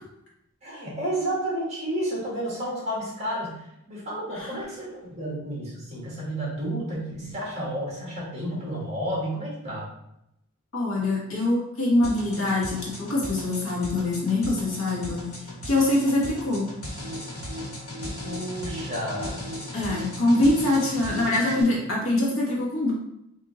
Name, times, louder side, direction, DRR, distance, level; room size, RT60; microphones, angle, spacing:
voice 1, 0.6-9.9 18.2-19.4, right 1 dB, 30° right, -5 dB, 1.5 m, -31 dB
voice 2, 10.7-15.3 15.6-16.7 19.7-22.9, left 2 dB, 60° left, -4 dB, 1.3 m, -24 dB
sound 1, 12.0-21.6, equal, 85° left, 1.4 m, -36 dB
3.7 x 2.8 x 3.9 m, 0.81 s
head